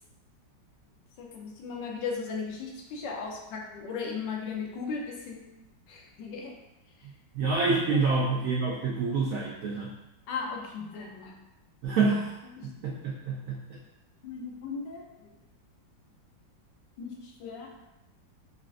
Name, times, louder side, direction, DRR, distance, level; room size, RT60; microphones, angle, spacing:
voice 1, 1.2-5.5 5.9-6.6 7.0-7.1 7.9-8.3 10.3-11.3 12.6-12.8 14.2-15.3 17.0-17.7, left 5 dB, 80° left, 0 dB, 1.3 m, -37 dB
voice 2, 7.3-9.9 11.8-12.3 12.6-13.8, right 4 dB, 80° right, -3 dB, 0.7 m, -27 dB
5.2 x 2.5 x 2.4 m, 0.98 s
omnidirectional pair, 2.0 m